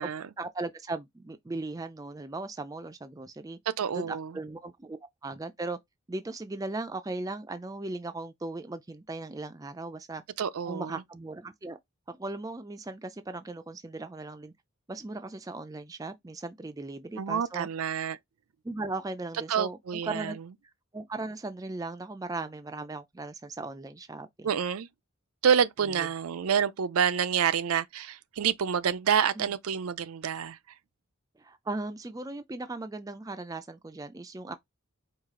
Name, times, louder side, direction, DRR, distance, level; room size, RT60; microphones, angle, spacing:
voice 1, 0.4-3.6 3.9-5.0 5.2-5.8 6.1-10.2 10.7-11.8 12.1-14.5 14.9-17.7 18.6-20.4 20.9-24.5 26.0-26.1 29.4-29.5 31.4-34.6, right 2 dB, 15° right, 0.3 m, -37 dB
voice 2, 3.8-4.3 10.4-11.0 17.2-18.2 19.5-20.3 24.4-24.9 25.4-30.6, right 7 dB, 80° right, 0.4 m, -28 dB
4.8 x 2.4 x 3.6 m
head